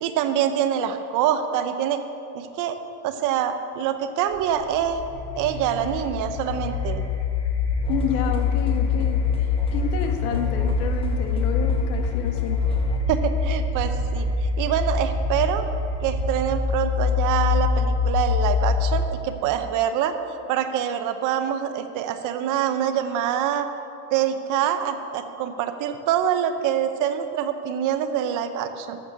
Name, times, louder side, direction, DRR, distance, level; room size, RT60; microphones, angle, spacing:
voice 1, 0.0-2.0 2.3-2.8 3.0-5.0 5.4-7.0 13.1-15.6 16.0-20.1 20.5-23.7 24.1-29.0, right 9 dB, 45° right, 8 dB, 0.8 m, -25 dB
sound 1, 4.3-19.2, left 4 dB, 35° left, 1.5 m, -24 dB
sound 2, 7.8-13.0, equal, 15° left, 1.0 m, -42 dB
voice 2, 7.9-9.2 9.7-12.6, left 8 dB, 80° left, 5 dB, 1.4 m, -29 dB
12.5 x 7.6 x 6.6 m, 2.7 s
cardioid pair, 155°, 42 cm